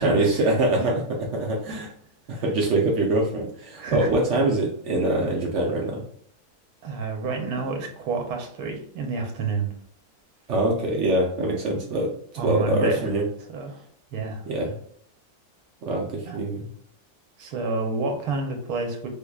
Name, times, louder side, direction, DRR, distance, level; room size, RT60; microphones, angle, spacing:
voice 1, 0.0-1.9 2.3-6.0 10.5-12.1 12.4-13.3 14.5-14.7 15.8-16.7, right 1 dB, 65° right, 0 dB, 0.8 m, -24 dB
voice 2, 3.7-4.1 6.8-9.7 12.4-13.1 13.5-13.8 14.1-14.4 16.3-16.4 17.4-19.1, right 3 dB, 85° right, 3 dB, 1.2 m, -29 dB
3.5 x 3.2 x 2.2 m, 0.66 s
omnidirectional pair, 1.6 m